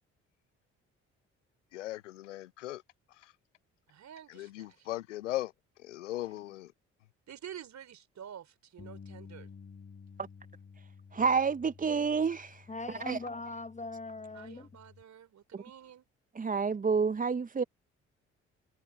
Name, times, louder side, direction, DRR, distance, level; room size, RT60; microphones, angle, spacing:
voice 1, 1.7-2.8 4.3-5.5 5.8-6.7, left 15 dB, 80° left, 0.6 m, -38 dB
voice 2, 3.9-4.9 6.2-6.4 7.3-9.5 14.3-16.1, right 9 dB, 50° right, 3.7 m, -49 dB
Bass guitar, 8.8-15.0, left 5 dB, 35° left, 5.7 m, -53 dB
voice 3, 10.8-13.2 15.5-15.6 16.3-17.6, right 5 dB, 25° right, 0.9 m, -30 dB
voice 4, 12.7-14.7, left 3 dB, 20° left, 1.0 m, -41 dB
figure-of-eight pair, 45°, 36 cm